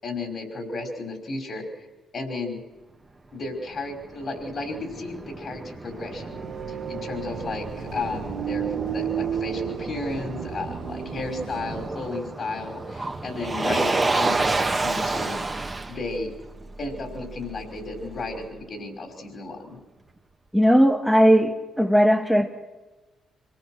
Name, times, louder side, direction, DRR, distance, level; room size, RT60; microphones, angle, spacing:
voice 1, 0.0-1.6 2.1-2.6 3.3-6.5 6.9-16.3 16.8-19.8, left 3 dB, 50° left, 4 dB, 5.4 m, -33 dB
Motor vehicle (road), 3.4-18.5, right 3 dB, 25° right, 2.2 m, -31 dB
sound 1, 6.1-11.9, right 9 dB, 75° right, 1.7 m, -33 dB
voice 2, 20.5-22.5, equal, ahead, 3 dB, 1.9 m, -18 dB
26.5 x 18.0 x 6.5 m, 1.2 s
hypercardioid pair, 45°, 0 cm